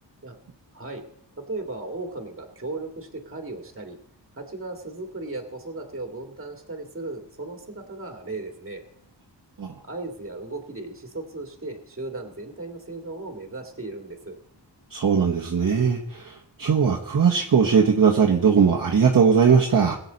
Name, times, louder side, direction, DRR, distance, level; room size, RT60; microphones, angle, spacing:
voice 1, 1.4-4.0 4.4-8.8 9.8-14.4, right 2 dB, 30° right, 3 dB, 2.1 m, -36 dB
voice 2, 14.9-19.9, right 6 dB, 50° right, 0 dB, 1.2 m, -19 dB
20.5 x 8.2 x 4.1 m, 0.74 s
wide cardioid pair, 135°, 44 cm